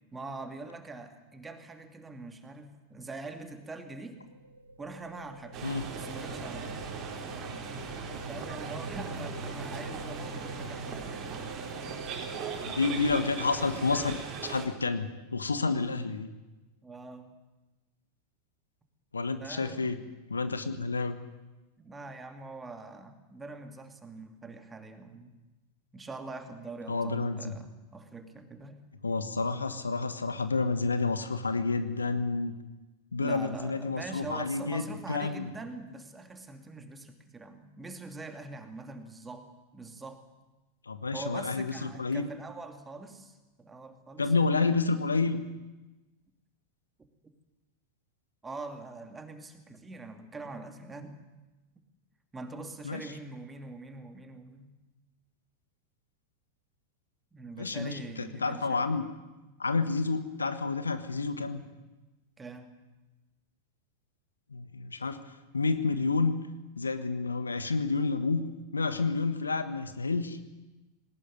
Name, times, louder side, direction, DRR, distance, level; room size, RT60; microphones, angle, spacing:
voice 1, 0.1-4.2 4.8-5.6 5.9-6.7 8.3-11.6 16.8-17.4 19.4-20.0 21.8-25.4 25.9-28.8 33.2-40.2 41.1-44.5 48.4-51.2 52.3-54.7 57.3-59.1 59.5-59.9 62.4-62.7, right 3 dB, 15° right, 6 dB, 2.7 m, -43 dB
sound 1, 3.8-16.0, right 2 dB, 85° right, 1.3 m, -45 dB
sound 2, 5.5-14.7, right 6 dB, 35° right, 4.1 m, -39 dB
voice 2, 12.7-14.1 14.4-16.3 19.1-20.0 20.3-21.2 26.9-27.5 29.0-32.5 33.1-35.5 40.9-42.3 44.2-45.4 52.8-53.1 57.6-59.0 59.6-61.6 64.5-65.2 65.5-66.4 66.8-68.4 68.7-70.5, left 4 dB, 75° left, 11 dB, 1.5 m, -29 dB
20.0 x 19.0 x 9.5 m, 1.1 s
figure-of-eight pair, 90°, 0 cm